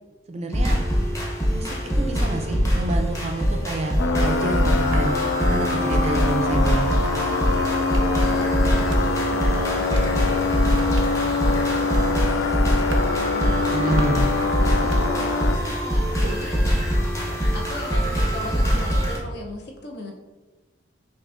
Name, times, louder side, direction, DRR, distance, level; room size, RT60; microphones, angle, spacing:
voice 1, 0.3-0.8 1.5-7.3 13.7-14.3, right 1 dB, 35° right, 4 dB, 0.4 m, -29 dB
sound 1, 0.5-19.2, equal, 15° left, 0.7 m, -23 dB
sound 2, 4.0-15.6, left 3 dB, 90° left, 0.4 m, -25 dB
sound 3, 4.7-5.1 5.7-6.1 6.7-7.0 7.8-8.4 8.7-9.1 9.7-10.2 10.7-11.3 11.7-12.1 12.7-13.1 13.7-14.3 14.7-15.4 15.7-16.3, right 2 dB, 85° right, 0.6 m, -42 dB
voice 2, 7.2-7.8 8.2-8.5 8.8-12.4 13.0-16.6 17.5-20.1, left 1 dB, 60° left, 0 dB, 0.7 m, -38 dB
5.9 x 2.4 x 2.5 m, 1.2 s
head